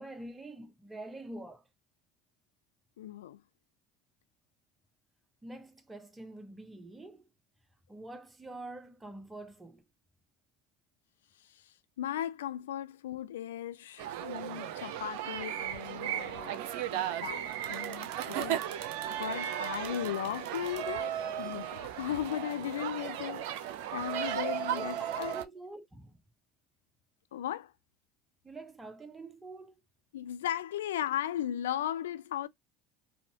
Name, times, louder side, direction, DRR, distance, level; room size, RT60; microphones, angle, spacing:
voice 1, 0.0-1.7 5.4-7.3 7.9-9.8 24.6-26.2 28.4-29.7, right 2 dB, 15° right, 1.0 m, -46 dB
voice 2, 3.0-3.4 11.5-18.9 19.2-25.4 27.3-27.7 30.1-32.5, left 11 dB, 85° left, 0.3 m, -37 dB
sound 1, 14.0-25.5, right 10 dB, 70° right, 0.6 m, -36 dB
4.1 x 2.7 x 2.8 m
hypercardioid pair, 75°, 0 cm